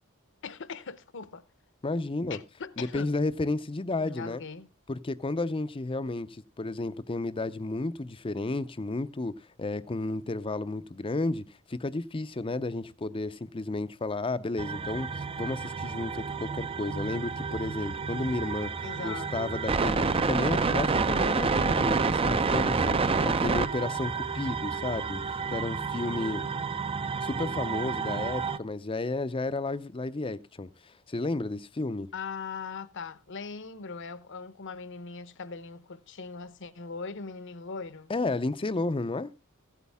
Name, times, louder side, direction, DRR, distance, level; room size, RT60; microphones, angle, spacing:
voice 1, 0.4-1.4 2.3-3.1 4.0-4.7 18.8-19.5 32.1-38.1, left 5 dB, 55° left, 0.9 m, -40 dB
voice 2, 1.8-2.4 2.8-4.4 4.9-26.4 27.2-32.1 38.1-39.3, left 2 dB, 25° left, 0.5 m, -32 dB
sound 1, 14.6-28.6, right 4 dB, 25° right, 0.5 m, -29 dB
15.5 x 8.4 x 3.5 m
head